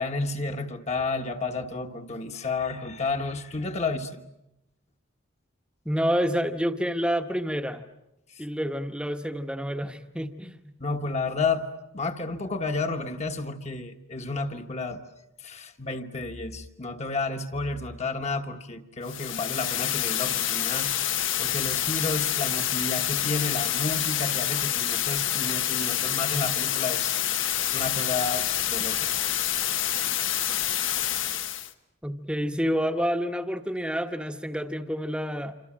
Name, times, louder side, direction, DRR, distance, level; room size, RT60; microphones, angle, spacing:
voice 1, 0.0-4.2 10.8-11.7 11.9-15.0 15.4-20.9 21.4-29.2, left 3 dB, 35° left, 1.4 m, -31 dB
voice 2, 5.8-7.8 8.4-10.6 32.0-35.5, equal, 5° right, 1.1 m, -28 dB
sound 1, 19.0-31.7, left 12 dB, 75° left, 1.2 m, -27 dB
27.0 x 26.5 x 7.5 m
head